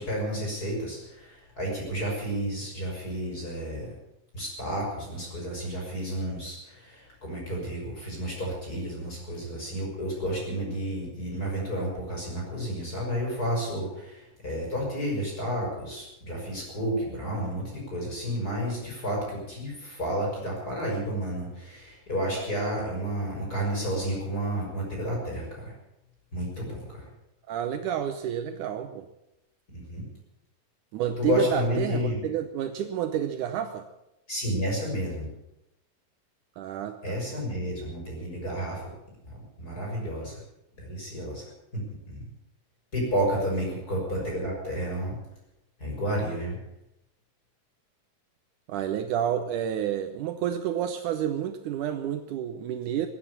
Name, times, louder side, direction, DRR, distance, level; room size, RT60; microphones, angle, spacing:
voice 1, 0.0-3.9 4.3-25.7 26.3-26.8 29.7-30.0 31.2-32.2 34.3-35.3 37.0-38.9 39.2-40.4 40.8-41.4 42.1-42.3 42.9-45.2 45.8-46.6, equal, 25° left, -2 dB, 6.7 m, -31 dB
voice 2, 27.5-29.1 30.9-33.9 36.6-37.2 43.7-43.8 48.7-53.1, right 10 dB, 75° right, 7 dB, 2.3 m, -30 dB
18.5 x 9.2 x 8.5 m, 0.89 s
omnidirectional pair, 3.8 m